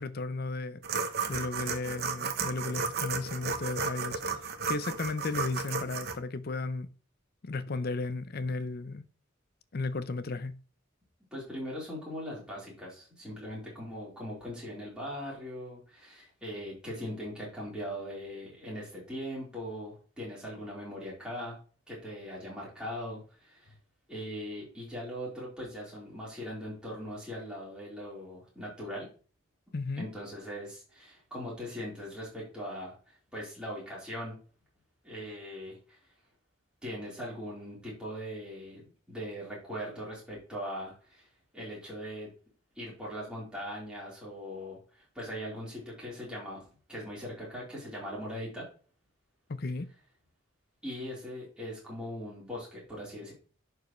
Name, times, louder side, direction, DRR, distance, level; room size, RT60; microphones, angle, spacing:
voice 1, 0.0-4.2 4.7-6.9 7.4-9.0 9.7-10.6 29.7-30.1 49.5-49.9, left 3 dB, 50° left, 0.6 m, -34 dB
sound 1, 0.8-6.1, right 5 dB, 50° right, 0.9 m, -33 dB
voice 2, 11.3-21.6 21.9-23.7 24.1-29.1 30.0-34.4 35.0-36.0 36.8-41.3 41.5-42.3 42.7-48.6 50.8-53.3, equal, 5° right, 4.0 m, -40 dB
11.0 x 4.8 x 3.1 m
head